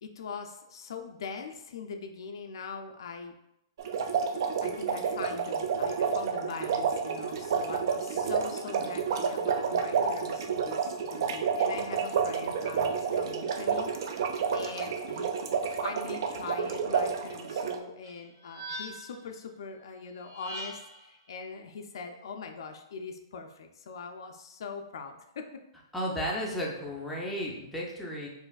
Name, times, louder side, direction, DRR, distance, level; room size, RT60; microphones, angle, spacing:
voice 1, 0.0-3.4 4.6-15.4 15.7-25.5 26.2-26.6, left 5 dB, 70° left, 5 dB, 0.4 m, -42 dB
sound 1, 3.8-17.8, right 6 dB, 55° right, 0.4 m, -30 dB
sound 2, 18.0-19.3 20.2-21.1, right 1 dB, 75° right, 1.2 m, -41 dB
voice 2, 25.9-28.3, equal, 5° left, -4 dB, 0.5 m, -33 dB
4.6 x 2.5 x 2.3 m, 0.86 s
hypercardioid pair, 160°, 3 cm